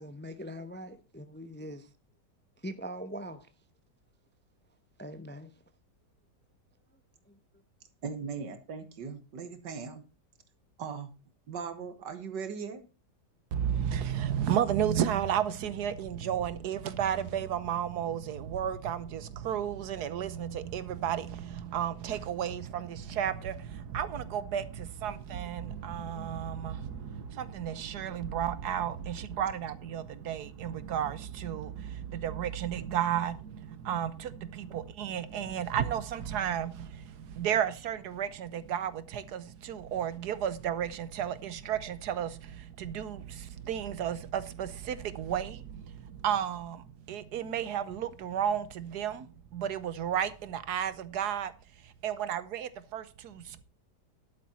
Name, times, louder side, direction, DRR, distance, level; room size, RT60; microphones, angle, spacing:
voice 1, 0.0-1.9 2.6-3.5 5.0-5.5 7.2-7.4, equal, 10° left, 0.6 m, -42 dB
voice 2, 8.0-10.0 10.8-11.1 11.5-12.8, right 6 dB, 90° right, 2.0 m, -39 dB
voice 3, 13.5-51.5 52.0-53.6, right 9 dB, 70° right, 1.4 m, -33 dB
Bowed string instrument, 25.4-30.6, right 1 dB, 45° left, 3.6 m, -57 dB
11.5 x 8.9 x 4.2 m
omnidirectional pair, 1.8 m